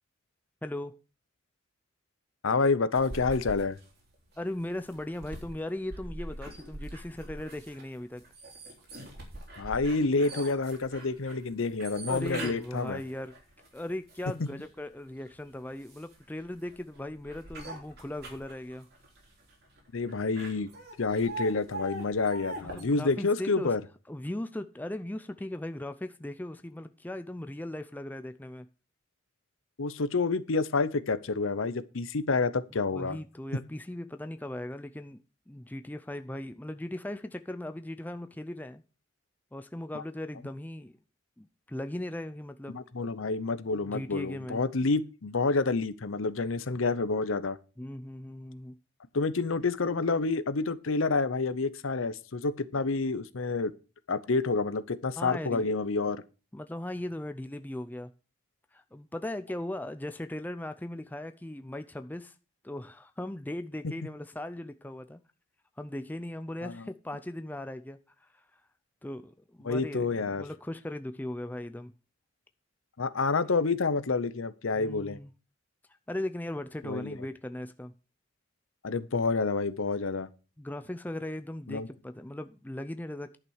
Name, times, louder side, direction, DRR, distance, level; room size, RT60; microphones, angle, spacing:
voice 1, 0.6-1.0 4.4-8.2 12.1-13.3 13.7-18.9 22.6-23.7 24.1-28.7 32.9-35.2 35.5-38.8 39.5-40.9 41.4-43.3 43.8-44.6 47.8-48.8 55.2-55.7 56.5-58.1 58.7-62.3 62.6-65.2 65.8-68.4 69.0-71.9 74.7-75.3 76.1-77.9 80.6-83.4, left 1 dB, 10° left, 0.4 m, -38 dB
voice 2, 2.4-3.8 9.6-13.0 14.4-14.5 19.9-20.7 21.0-23.8 29.8-33.2 42.7-47.6 49.1-53.7 54.1-56.2 63.8-63.9 66.6-66.8 69.6-70.4 73.0-75.2 76.8-77.2 78.8-80.3 81.7-81.9, left 3 dB, 75° left, 0.7 m, -28 dB
sound 1, 2.9-14.7 15.2-22.8, right 1 dB, 50° right, 3.5 m, -43 dB
11.0 x 6.0 x 6.4 m
head